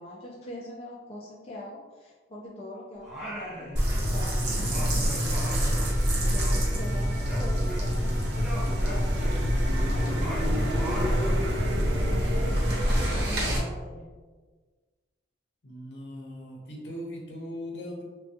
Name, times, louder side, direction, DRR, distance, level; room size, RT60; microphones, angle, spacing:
voice 1, 0.0-5.5 6.1-11.5 12.0-14.1, left 1 dB, 35° left, -4 dB, 0.4 m, -43 dB
Singing, 3.0-4.2 4.4-8.1 8.4-11.6, equal, 5° right, 0.7 m, -39 dB
sound 1, 3.8-13.6, equal, 60° right, 0.9 m, -27 dB
sound 2, 4.3-13.2, equal, 75° right, 0.5 m, -31 dB
voice 2, 15.6-18.0, equal, 70° left, -1 dB, 0.7 m, -39 dB
3.5 x 2.2 x 2.7 m, 1.4 s
head